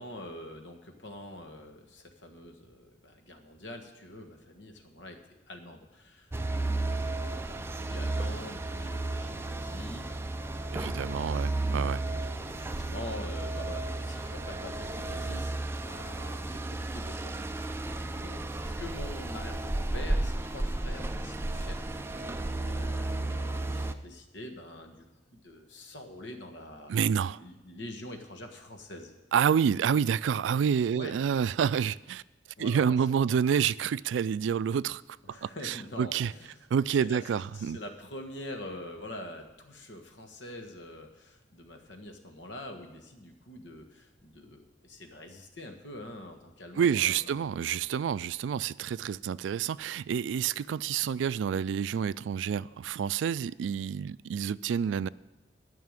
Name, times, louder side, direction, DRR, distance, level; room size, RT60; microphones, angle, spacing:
voice 1, 0.0-11.4 12.0-17.3 17.6-26.9 27.4-29.1 30.9-31.2 32.6-33.0 33.3-33.4 35.3-36.6 36.9-47.6, left 1 dB, 75° left, 1.5 m, -45 dB
sound 1, 6.3-23.9, right 2 dB, 15° right, 0.4 m, -33 dB
voice 2, 10.7-12.0 26.9-27.4 29.3-32.2 32.6-35.0 35.3-36.3 36.7-37.8 46.8-55.1, right 7 dB, 80° right, 0.3 m, -28 dB
13.0 x 5.8 x 9.0 m
head